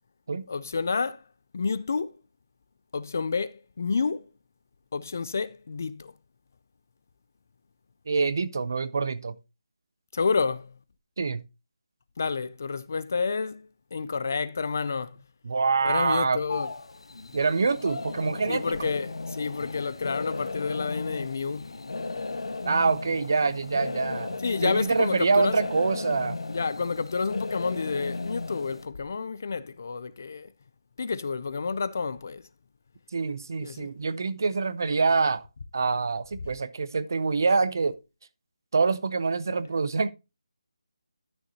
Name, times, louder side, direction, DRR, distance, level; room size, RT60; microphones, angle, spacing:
voice 1, 0.5-1.2 1.5-2.1 2.9-4.3 4.9-6.1 10.1-10.7 12.2-15.1 15.8-16.7 18.5-21.7 24.4-25.6 26.5-30.5 31.0-32.4 33.6-33.9, left 5 dB, 30° left, 0.3 m, -29 dB
voice 2, 8.1-9.3 11.2-11.4 15.4-16.4 17.3-18.9 22.6-24.4 24.6-26.4 33.1-35.4 35.7-38.0 38.7-40.1, right 4 dB, 35° right, 0.5 m, -25 dB
sound 1, 16.5-28.9, left 3 dB, 65° left, 1.1 m, -36 dB
12.5 x 6.6 x 2.7 m
figure-of-eight pair, 180°, 3 cm